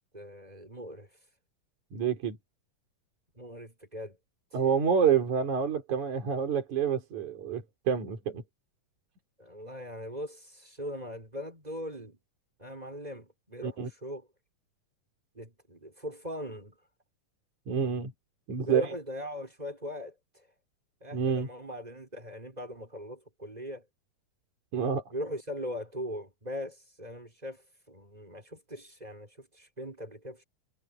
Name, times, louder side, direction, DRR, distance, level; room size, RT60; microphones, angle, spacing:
voice 1, 0.1-1.1 3.3-4.2 4.5-4.6 9.4-12.2 12.6-14.3 15.3-16.8 18.7-20.1 21.0-23.8 25.1-27.6 27.9-30.4, equal, 10° right, 5.1 m, -40 dB
voice 2, 1.9-2.4 4.5-8.4 13.6-13.9 17.7-18.1 18.5-18.9 21.1-21.5 24.7-25.0, right 7 dB, 60° right, 5.2 m, -28 dB
omnidirectional pair, 3.8 m